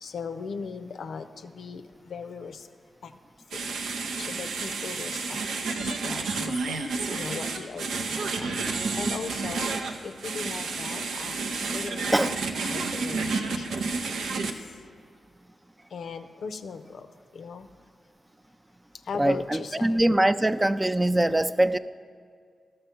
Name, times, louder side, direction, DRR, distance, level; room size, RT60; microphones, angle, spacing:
voice 1, 0.0-1.8 2.1-2.6 4.3-5.1 6.0-6.8 7.1-8.1 8.4-8.5 8.9-9.7 10.0-11.3 11.7-13.7 14.3-14.4 15.9-17.1 17.4-17.7 19.1-20.0, left 5 dB, 75° left, 9 dB, 0.5 m, -38 dB
sound 1, 3.5-14.5, right 4 dB, 85° right, 0.6 m, -30 dB
voice 2, 19.2-21.8, right 1 dB, 20° right, 12 dB, 0.4 m, -23 dB
12.0 x 6.7 x 5.8 m, 2.2 s
supercardioid pair, 40°, 0 cm